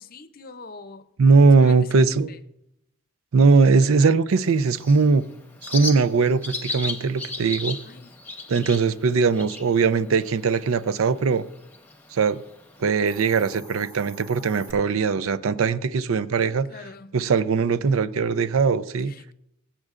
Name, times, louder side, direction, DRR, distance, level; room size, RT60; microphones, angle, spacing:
voice 1, 0.0-1.1 1.5-2.4 7.8-8.2 16.7-17.1 19.0-19.3, left 3 dB, 45° left, 0.6 m, -44 dB
voice 2, 1.2-2.3 3.3-5.2 5.7-7.8 8.5-11.4 12.1-12.4 12.8-16.7 17.1-19.1, right 4 dB, 90° right, 0.5 m, -20 dB
Bird, 4.3-13.3, left 3 dB, 10° left, 1.0 m, -37 dB
Hiss, 13.1-14.7, right 1 dB, 15° right, 1.0 m, -45 dB
22.0 x 7.4 x 2.5 m
head